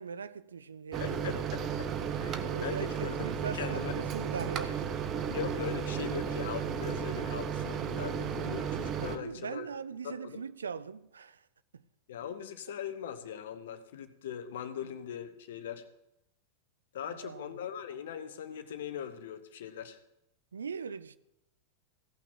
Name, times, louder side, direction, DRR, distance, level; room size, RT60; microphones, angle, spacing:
voice 1, 0.0-1.4 2.3-4.9 9.1-11.4 17.0-17.6 20.5-21.2, right 6 dB, 70° right, 0.4 m, -40 dB
Microwave oven, 0.9-9.2, right 7 dB, 30° right, 0.8 m, -34 dB
voice 2, 1.0-1.9 2.2-3.3 3.5-3.9 5.3-9.7 10.0-10.4 12.1-15.8 16.9-20.0, left 9 dB, 60° left, 0.9 m, -40 dB
16.5 x 5.9 x 6.0 m
figure-of-eight pair, 90°, 0 cm